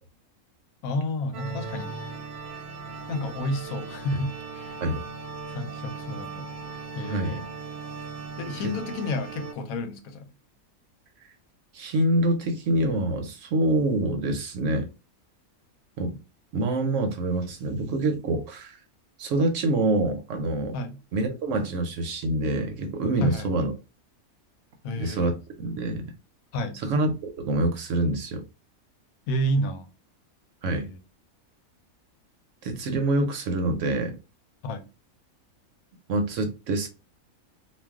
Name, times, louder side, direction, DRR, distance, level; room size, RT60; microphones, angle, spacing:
voice 1, 0.8-1.9 3.1-4.8 5.5-6.5 6.9-7.4 8.4-10.3 20.7-21.0 23.2-23.5 24.8-25.3 26.5-26.8 29.3-29.9 30.6-31.0 34.6-34.9, left 1 dB, 75° left, 1.0 m, -30 dB
sound 1, 1.3-9.5, right 4 dB, 85° right, 1.1 m, -38 dB
voice 2, 11.7-14.9 16.0-16.2 16.5-18.8 19.2-20.8 21.1-23.7 25.0-26.1 26.8-28.4 30.6-30.9 32.6-34.2 36.1-36.9, right 2 dB, 65° right, 0.8 m, -26 dB
2.4 x 2.2 x 3.4 m
omnidirectional pair, 1.5 m